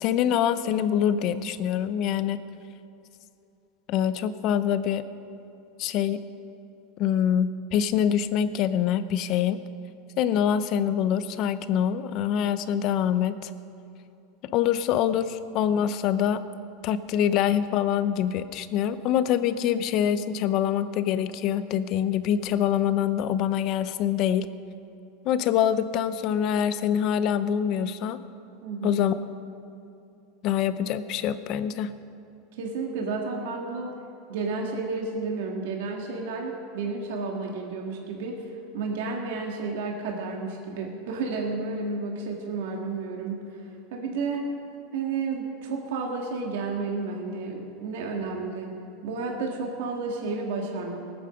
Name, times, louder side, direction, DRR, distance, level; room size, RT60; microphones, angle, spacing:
voice 1, 0.0-2.4 3.9-5.0 5.8-6.2 7.0-9.6 10.2-13.5 14.5-16.4 16.8-24.5 25.2-28.2 28.8-29.1 30.4-31.9, left 9 dB, 45° left, 12 dB, 0.7 m, -25 dB
voice 2, 28.6-29.0 32.5-33.9 34.3-44.5 44.9-48.8 49.0-51.0, right 4 dB, 75° right, 0 dB, 1.9 m, -31 dB
19.5 x 8.8 x 6.3 m, 2.7 s
supercardioid pair, 155°, 0 cm